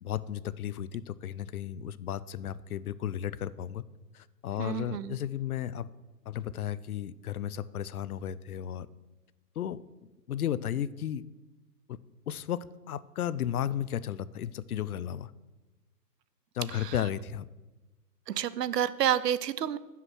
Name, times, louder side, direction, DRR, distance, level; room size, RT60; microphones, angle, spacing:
voice 1, 0.0-3.8 4.1-5.9 6.3-8.9 9.6-9.8 10.3-11.2 12.3-15.3 16.5-17.5, left 10 dB, 65° left, 19 dB, 0.5 m, -34 dB
voice 2, 4.6-5.2 16.7-17.0 18.3-19.8, right 10 dB, 80° right, 17 dB, 0.7 m, -29 dB
9.7 x 5.9 x 6.2 m, 1.1 s
hypercardioid pair, 170°, 48 cm